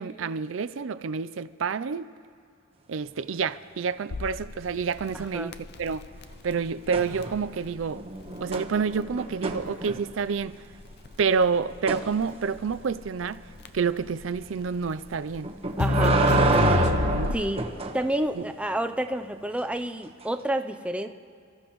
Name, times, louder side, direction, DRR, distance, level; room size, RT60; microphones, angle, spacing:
voice 1, 0.0-2.1 2.9-6.1 6.4-8.0 8.4-10.6 11.2-13.4 13.7-15.5 16.5-17.4 18.4-18.5, right 5 dB, 70° right, 0.5 m, -28 dB
Crackle, 4.1-17.7, left 3 dB, 55° left, 0.6 m, -31 dB
voice 2, 5.1-5.5 15.8-16.2 17.3-21.1, right 1 dB, 5° right, 0.6 m, -30 dB
sound 1, 6.9-7.6 7.9-10.3 11.9-12.1 15.4-18.0 20.2-20.3, right 3 dB, 30° right, 1.2 m, -27 dB
29.5 x 14.5 x 3.1 m
head